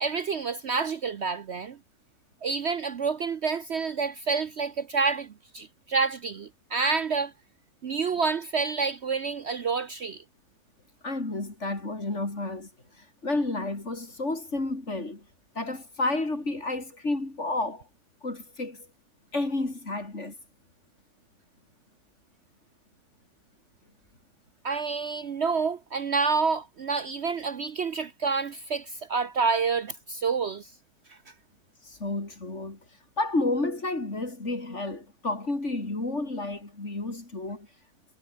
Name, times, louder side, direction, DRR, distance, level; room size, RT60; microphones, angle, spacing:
voice 1, 0.0-1.8 2.4-7.3 7.8-10.2 24.6-30.7, right 5 dB, 50° right, 1.0 m, -28 dB
voice 2, 11.0-12.7 13.0-15.3 15.5-17.8 18.2-18.9 19.3-20.3 31.8-32.8 33.2-37.7, left 2 dB, 50° left, 4.7 m, -31 dB
omnidirectional pair, 1.6 m